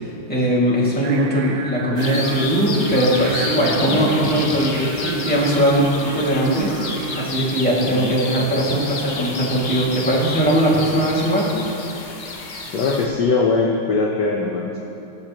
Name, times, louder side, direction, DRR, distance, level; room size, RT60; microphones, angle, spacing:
voice 1, 0.3-6.7 7.2-11.5, right 1 dB, 5° left, -6 dB, 1.8 m, -19 dB
Singing, 1.0-7.3, right 5 dB, 85° right, 1.6 m, -31 dB
sound 1, 2.0-13.1, left 3 dB, 50° left, 0.7 m, -31 dB
voice 2, 12.7-14.8, left 4 dB, 65° left, -1 dB, 1.2 m, -21 dB
21.0 x 7.3 x 3.0 m, 2.8 s
omnidirectional pair, 2.4 m